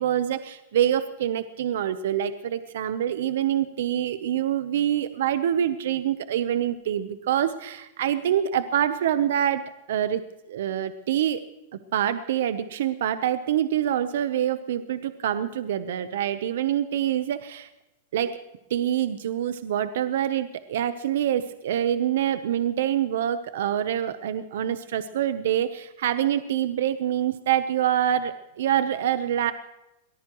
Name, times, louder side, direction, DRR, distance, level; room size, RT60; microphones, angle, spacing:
voice 1, 0.0-10.2 10.5-11.4 11.9-17.7 18.1-18.4 18.7-29.5, right 10 dB, 65° right, 12 dB, 0.8 m, -26 dB
23.0 x 19.0 x 3.1 m, 0.95 s
supercardioid pair, 175°, 0 cm